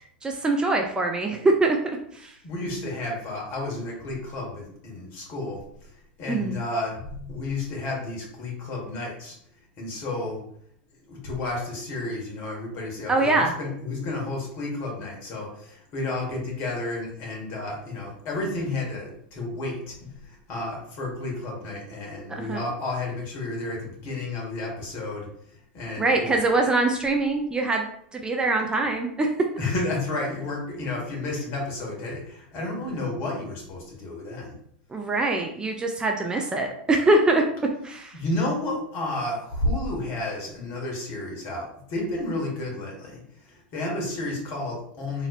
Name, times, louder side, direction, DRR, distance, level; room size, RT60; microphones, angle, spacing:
voice 1, 0.2-1.8 2.1-2.3 6.3-6.6 13.1-13.5 22.3-22.6 26.0-27.9 28.1-29.3 34.9-37.5 37.8-38.2, right 2 dB, 15° right, 2 dB, 0.4 m, -23 dB
voice 2, 2.4-9.4 9.8-10.4 11.1-26.3 29.6-34.6 38.1-45.3, left 2 dB, 45° left, -1 dB, 1.5 m, -31 dB
4.0 x 2.9 x 2.5 m, 0.68 s
figure-of-eight pair, 90°, 5 cm